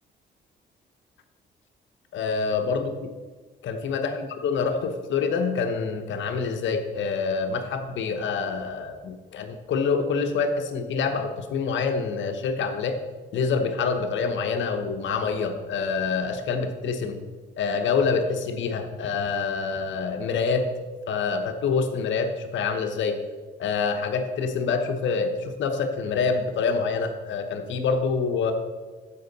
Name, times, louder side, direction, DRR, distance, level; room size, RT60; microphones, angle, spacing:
voice 1, 2.1-3.1 3.6-13.0 13.3-17.2 17.6-20.7 21.1-23.2 23.6-28.5, left 5 dB, 70° left, 7 dB, 1.0 m, -26 dB
13.5 x 5.4 x 4.0 m, 1.3 s
cardioid pair, 90°, 20 cm